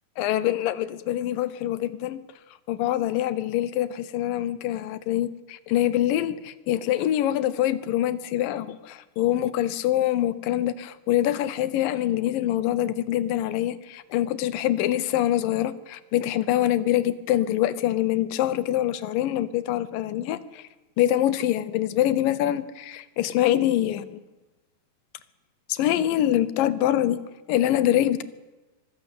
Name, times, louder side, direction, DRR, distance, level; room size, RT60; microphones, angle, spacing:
voice 1, 0.2-2.2 2.7-20.6 21.0-24.2 25.7-27.2 27.5-28.2, left 12 dB, 80° left, 16 dB, 2.6 m, -25 dB
23.5 x 15.0 x 8.5 m, 1.1 s
omnidirectional pair, 3.9 m